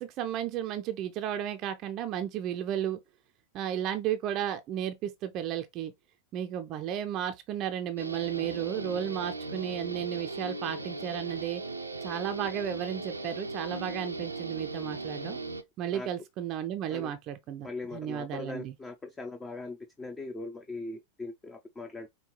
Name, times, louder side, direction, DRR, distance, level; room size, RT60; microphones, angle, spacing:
voice 1, 0.0-3.0 3.5-5.9 6.3-11.6 12.0-15.4 15.8-18.7, right 10 dB, 35° right, 0.5 m, -33 dB
Guitar, 8.0-15.6, right 3 dB, 85° right, 0.5 m, -38 dB
voice 2, 17.6-22.1, left 3 dB, 15° left, 0.6 m, -40 dB
5.4 x 2.3 x 3.0 m
figure-of-eight pair, 90°, 0 cm